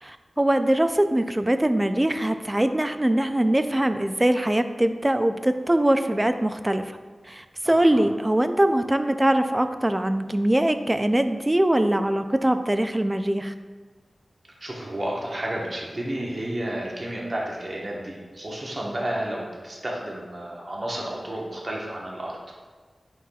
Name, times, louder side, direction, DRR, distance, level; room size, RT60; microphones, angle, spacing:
voice 1, 0.0-6.9 7.3-13.5, right 1 dB, 20° right, 9 dB, 0.4 m, -22 dB
voice 2, 7.6-8.1 14.6-22.4, right 1 dB, 40° right, -3 dB, 1.2 m, -31 dB
9.4 x 5.7 x 2.3 m, 1.4 s
wide cardioid pair, 75°, 0 cm